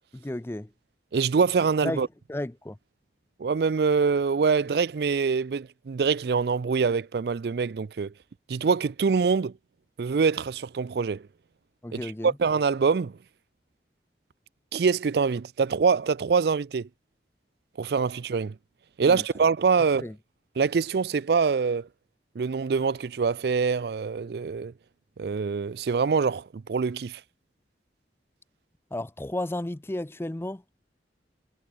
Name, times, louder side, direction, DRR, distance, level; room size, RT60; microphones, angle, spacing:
voice 1, 0.1-0.7 1.8-2.0 2.3-2.8 11.8-12.4 19.0-19.2 20.0-20.2 28.9-30.6, left 1 dB, 15° left, 0.5 m, -33 dB
voice 2, 1.1-2.1 3.4-8.1 8.5-9.5 10.0-11.3 11.9-13.2 14.7-16.9 17.8-18.6 19.0-20.1 20.6-21.9 22.4-24.7 25.2-27.2, right 5 dB, 65° right, 0.4 m, -24 dB
head